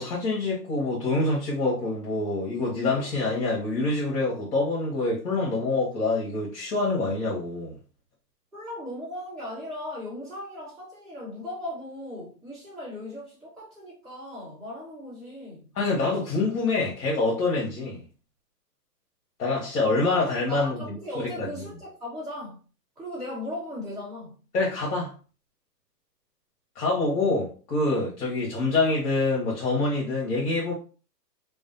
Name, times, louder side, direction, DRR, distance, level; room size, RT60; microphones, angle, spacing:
voice 1, 0.0-7.8 15.7-18.0 19.4-21.6 24.5-25.1 26.7-30.7, left 3 dB, 65° left, 1.0 m, -26 dB
voice 2, 8.5-15.7 20.1-22.6 23.0-24.4, left 1 dB, ahead, 1.0 m, -37 dB
2.4 x 2.1 x 2.6 m
hypercardioid pair, 150°, 49 cm